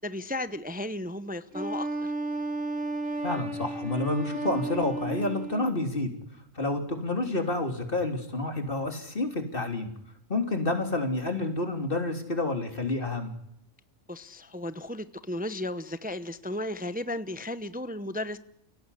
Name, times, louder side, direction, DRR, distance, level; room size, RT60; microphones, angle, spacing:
voice 1, 0.0-2.1 14.1-18.4, left 1 dB, 10° right, 12 dB, 0.8 m, -34 dB
Wind instrument woodwind instrument, 1.5-5.8, right 2 dB, 75° right, 2.8 m, -33 dB
voice 2, 3.2-6.1 6.5-9.9 10.3-13.3, left 2 dB, 45° left, 4 dB, 3.7 m, -29 dB
29.5 x 17.5 x 9.9 m, 0.78 s
omnidirectional pair, 1.3 m